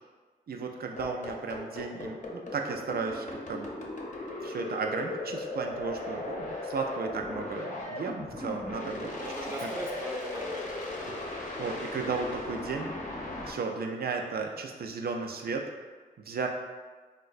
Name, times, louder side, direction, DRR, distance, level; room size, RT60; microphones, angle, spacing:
voice 1, 0.5-3.7 4.4-9.1 9.6-9.7 11.1-12.9 13.5-15.6 16.3-16.5, right 4 dB, 65° right, 3 dB, 0.4 m, -34 dB
sound 1, 1.0-13.5, left 2 dB, 50° left, 0.6 m, -37 dB
voice 2, 9.1-11.2, right 1 dB, 15° right, -1 dB, 0.6 m, -39 dB
3.7 x 2.1 x 2.4 m, 1.4 s
cardioid pair, 50°, 17 cm